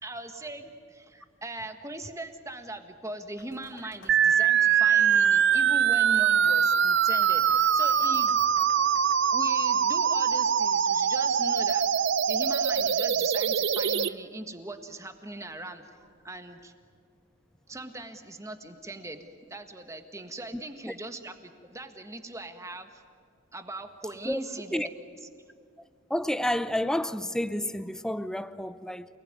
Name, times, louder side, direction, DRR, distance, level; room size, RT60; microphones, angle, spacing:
voice 1, 0.0-8.4 9.3-11.9 12.3-16.7 17.7-23.0 23.5-24.9, right 2 dB, 15° right, 1.5 m, -40 dB
sound 1, 3.4-9.2, left 3 dB, 70° left, 3.6 m, -53 dB
sound 2, 4.1-14.1, right 8 dB, 55° right, 0.6 m, -23 dB
voice 2, 26.1-29.1, left 1 dB, 5° left, 0.6 m, -30 dB
28.5 x 19.5 x 9.6 m
head